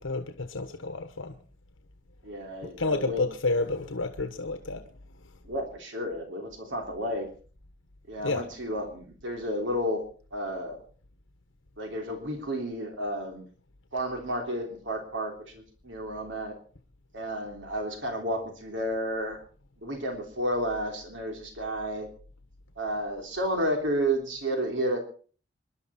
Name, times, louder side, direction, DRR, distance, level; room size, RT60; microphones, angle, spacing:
voice 1, 0.0-1.3 2.8-4.8 8.2-8.4, left 3 dB, 85° left, 1.3 m, -30 dB
voice 2, 2.2-3.3 5.4-7.3 8.1-10.0 10.3-10.8 11.8-13.5 13.9-16.6 17.1-19.4 19.8-22.1 22.8-25.0, equal, 70° right, 3.4 m, -31 dB
26.5 x 11.5 x 4.3 m
head